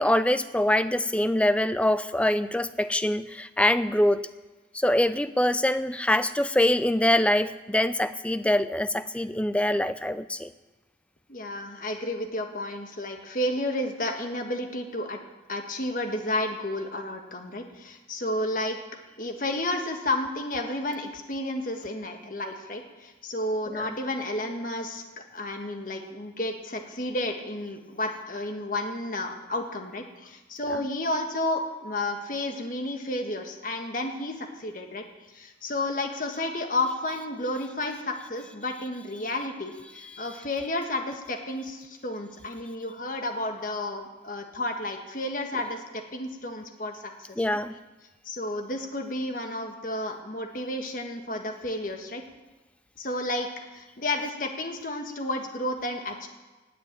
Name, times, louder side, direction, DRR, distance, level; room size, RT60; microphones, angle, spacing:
voice 1, 0.0-4.2 4.7-10.5 23.7-23.9 30.7-30.8 40.1-40.3 47.4-47.7, left 1 dB, 5° left, 13 dB, 0.4 m, -24 dB
voice 2, 11.3-15.2 15.5-18.8 19.2-35.0 35.3-47.6 48.2-52.2 53.0-56.3, left 1 dB, 45° left, 4 dB, 1.6 m, -31 dB
18.5 x 6.9 x 8.8 m, 1.2 s
head